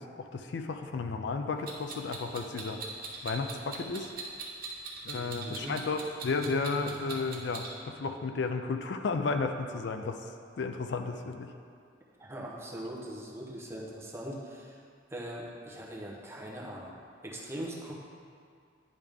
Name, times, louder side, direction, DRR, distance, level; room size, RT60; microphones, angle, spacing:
voice 1, 0.0-2.8 3.2-4.1 5.0-10.2 10.6-11.5, left 4 dB, 70° left, 6 dB, 0.4 m, -33 dB
Clock, 1.7-7.7, right 4 dB, 55° right, 1.0 m, -41 dB
voice 2, 5.1-5.8 12.2-14.8 15.1-17.0 17.2-17.9, right 1 dB, 15° right, -4 dB, 0.8 m, -41 dB
10.5 x 3.5 x 3.5 m, 2.3 s
head